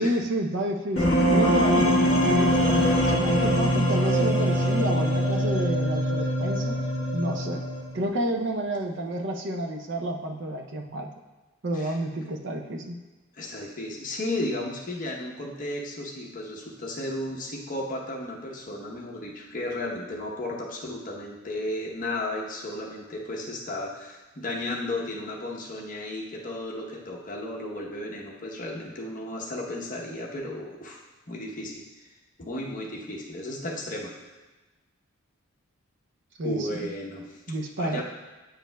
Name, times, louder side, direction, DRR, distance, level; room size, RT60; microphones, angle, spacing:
voice 1, 0.0-6.8 7.1-7.6 7.9-11.1 11.6-13.0 36.4-36.8 37.5-38.0, right 1 dB, 55° right, 3 dB, 0.5 m, -30 dB
sound 1, 1.0-8.0, equal, 55° left, 1.1 m, -23 dB
voice 2, 13.3-31.0 31.3-31.8 32.4-34.1 36.4-37.4 37.8-38.0, left 1 dB, 35° left, -2 dB, 0.8 m, -34 dB
8.9 x 5.1 x 2.2 m, 1.2 s
head